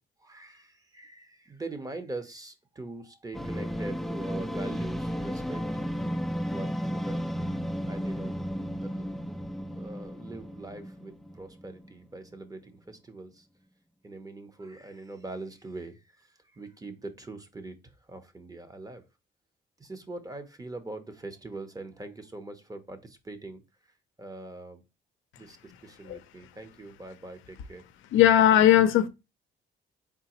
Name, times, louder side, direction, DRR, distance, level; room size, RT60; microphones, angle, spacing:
voice 1, 0.2-5.8 6.4-7.2 7.9-8.3 8.7-9.1 9.8-13.5 14.0-19.0 19.8-23.6 24.2-24.8 25.4-27.9, right 2 dB, 20° right, 0.8 m, -42 dB
sound 1, 3.3-11.9, equal, ahead, 0.4 m, -34 dB
voice 2, 28.1-29.1, left 11 dB, 85° left, 0.5 m, -18 dB
3.8 x 3.7 x 2.9 m
cardioid pair, 90°, 20 cm